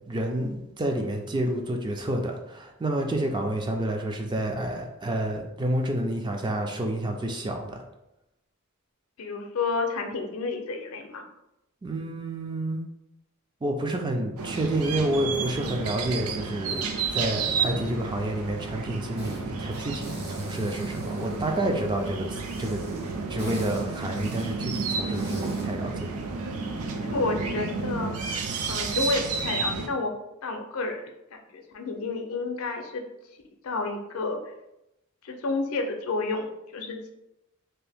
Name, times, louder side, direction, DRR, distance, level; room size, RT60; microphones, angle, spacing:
voice 1, 0.0-7.8 11.8-12.8 13.6-22.8 23.3-26.1, right 1 dB, 20° right, 3 dB, 0.3 m, -29 dB
voice 2, 9.2-11.3 27.0-28.1 28.7-30.1 30.4-33.0 33.6-34.4 35.2-37.1, left 3 dB, 80° left, 4 dB, 0.5 m, -30 dB
sound 1, 14.4-29.9, right 4 dB, 85° right, 0.4 m, -31 dB
sound 2, 19.2-19.4 19.7-21.8 22.3-25.7, right 1 dB, 50° right, 1.1 m, -43 dB
2.7 x 2.5 x 3.4 m, 0.88 s
head